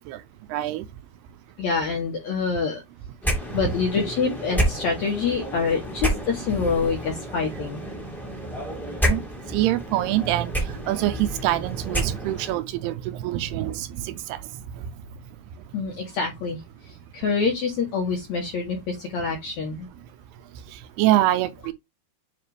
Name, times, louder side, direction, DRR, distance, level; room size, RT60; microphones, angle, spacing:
voice 1, 0.5-0.8 8.8-9.2 9.5-14.4 14.7-14.9 20.7-21.7, right 14 dB, 80° right, 2.5 m, -25 dB
voice 2, 1.6-2.8 3.5-7.8 15.7-16.6 17.1-19.9, left 5 dB, 70° left, 1.7 m, -26 dB
sound 1, 3.2-12.6, equal, ahead, 0.4 m, -30 dB
9.5 x 3.3 x 3.4 m
omnidirectional pair, 4.8 m